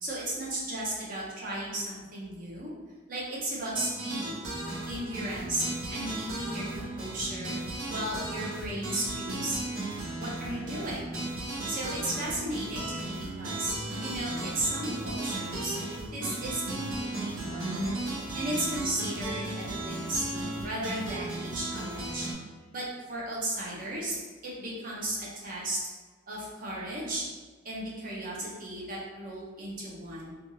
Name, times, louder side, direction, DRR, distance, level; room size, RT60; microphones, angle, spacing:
voice 1, 0.0-2.7 3.1-4.3 4.9-5.6 5.9-7.5 7.9-9.6 10.2-11.1 11.7-13.7 14.0-15.8 16.1-18.0 18.3-22.3 22.7-24.2 24.4-25.8 26.3-27.2 27.6-30.3, right 1 dB, 40° right, -5 dB, 0.7 m, -35 dB
sound 1, 3.7-22.3, right 2 dB, 80° right, 0.7 m, -35 dB
2.6 x 2.3 x 3.0 m, 1.4 s
head